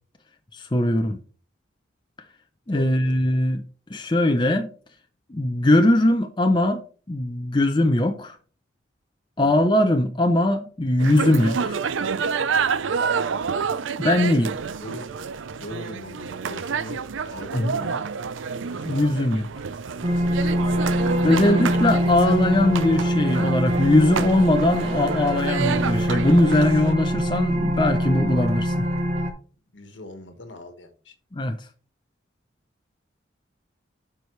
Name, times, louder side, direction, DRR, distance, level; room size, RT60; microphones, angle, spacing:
voice 1, 0.6-1.2 2.7-3.6 3.9-4.7 5.3-6.8 7.1-8.4 9.4-11.8 14.0-14.5 17.5-17.7 18.9-19.5 21.2-28.9 31.3-31.6, left 1 dB, 25° left, 0.6 m, -20 dB
voice 2, 2.7-3.2 9.4-9.6 14.8-15.1 15.5-17.0 17.2-18.0 18.6-19.1 29.7-31.1, left 1 dB, 70° left, 1.6 m, -40 dB
sound 1, 11.0-26.9, right 5 dB, 80° right, 0.5 m, -29 dB
sound 2, 20.0-29.3, equal, 35° right, 1.1 m, -24 dB
12.5 x 4.8 x 3.2 m
head